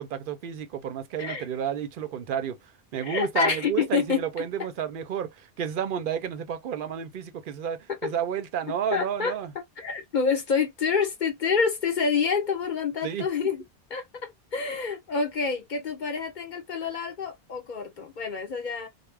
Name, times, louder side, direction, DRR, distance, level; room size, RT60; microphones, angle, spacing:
voice 1, 0.0-2.6 2.9-9.5 13.0-13.3, right 8 dB, 60° right, 0.6 m, -31 dB
voice 2, 3.0-4.2 7.9-8.1 8.9-9.3 9.8-13.6 13.9-18.9, left 5 dB, 50° left, 0.9 m, -27 dB
2.3 x 2.0 x 3.2 m
omnidirectional pair, 1.1 m